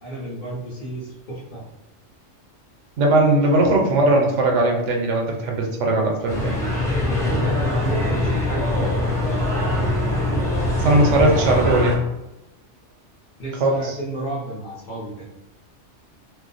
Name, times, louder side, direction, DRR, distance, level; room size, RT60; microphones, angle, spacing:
voice 1, 0.0-1.6 7.0-11.5 13.4-15.2, right 1 dB, 45° left, -5 dB, 0.9 m, -33 dB
voice 2, 3.0-6.6 10.8-12.0 13.6-13.9, right 2 dB, 80° right, 1 dB, 1.0 m, -19 dB
sound 1, 6.3-12.0, left 1 dB, 5° left, 0.6 m, -22 dB
2.5 x 2.1 x 3.8 m, 0.92 s
omnidirectional pair, 1.2 m